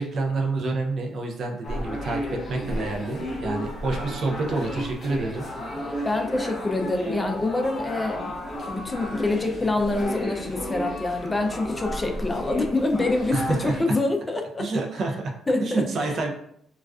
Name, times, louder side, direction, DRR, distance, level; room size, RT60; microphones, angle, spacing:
voice 1, 0.0-5.5 13.3-13.8 14.6-15.3 15.6-16.3, right 3 dB, 60° right, 2 dB, 0.5 m, -28 dB
sound 1, 1.6-13.8, left 1 dB, 40° left, 0.7 m, -33 dB
voice 2, 6.0-8.3 8.7-14.7 15.5-16.2, left 2 dB, 20° left, 3 dB, 0.4 m, -26 dB
2.3 x 2.2 x 2.3 m, 0.70 s
cardioid pair, 90°, 0 cm